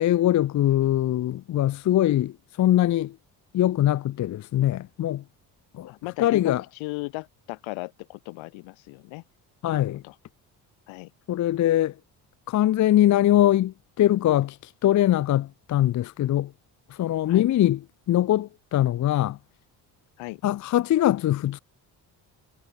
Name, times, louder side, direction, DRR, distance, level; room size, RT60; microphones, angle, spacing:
voice 1, 0.0-3.1 3.5-5.2 5.7-5.9 6.2-6.6 9.6-10.0 11.3-11.9 12.5-14.6 14.8-16.5 17.0-17.8 18.1-19.4 20.4-21.6, left 13 dB, 40° left, 0.5 m, -22 dB
voice 2, 5.9-9.2 9.6-9.7 10.0-10.2 10.9-11.1 17.3-17.5 20.2-20.4, left 24 dB, 85° left, 3.8 m, -36 dB
supercardioid pair, 60°, 46 cm